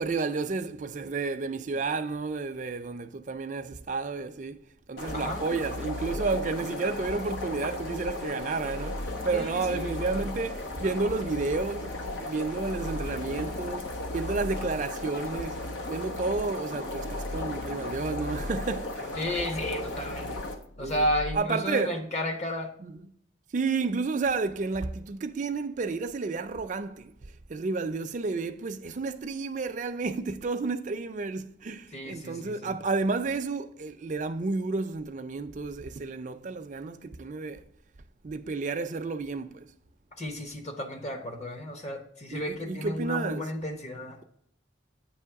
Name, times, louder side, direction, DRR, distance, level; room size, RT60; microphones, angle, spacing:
voice 1, 0.0-12.0 12.2-15.6 15.9-19.2 20.8-21.1 21.3-22.0 22.8-23.1 23.5-37.7 38.2-39.7 42.3-43.5, right 4 dB, 40° right, 0.4 m, -31 dB
sound 1, 5.0-20.5, left 2 dB, 90° left, 1.0 m, -37 dB
sound 2, 5.1-21.4, left 1 dB, 55° left, 0.4 m, -40 dB
voice 2, 9.3-10.4 19.2-20.4 20.8-22.7 31.9-32.7 40.2-44.2, left 1 dB, 40° left, 0.9 m, -33 dB
8.5 x 3.1 x 4.6 m
head